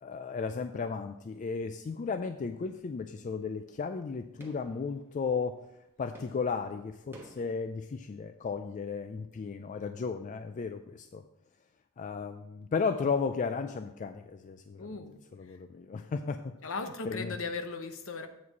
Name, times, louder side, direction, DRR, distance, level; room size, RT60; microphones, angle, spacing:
voice 1, 0.0-5.6 6.0-11.2 12.0-14.9 15.4-16.5 17.1-17.3, left 5 dB, 35° left, 0.3 m, -34 dB
sound 1, 1.1-1.5 1.8-7.6, right 2 dB, 10° right, 1.3 m, -56 dB
voice 2, 14.8-15.6 16.6-18.3, left 4 dB, 65° left, 0.9 m, -38 dB
8.2 x 4.7 x 5.9 m
head